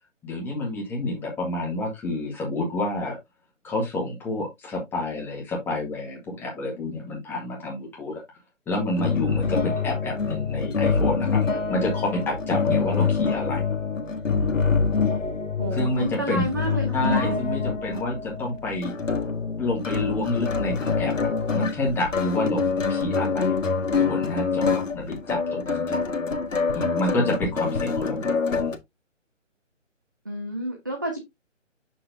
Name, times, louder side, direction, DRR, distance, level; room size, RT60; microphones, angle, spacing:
voice 1, 0.2-3.2 3.6-8.2 8.7-13.6 15.7-16.5 16.9-18.9 19.6-22.6 22.9-23.6 24.0-26.1 26.7-28.6, left 2 dB, 5° left, 1.5 m, -29 dB
sound 1, 9.0-28.8, left 5 dB, 90° left, 1.6 m, -25 dB
voice 2, 12.7-13.0 15.6-17.4 30.2-31.2, right 1 dB, 15° right, 0.5 m, -30 dB
7.0 x 6.2 x 2.6 m
figure-of-eight pair, 155°, 38 cm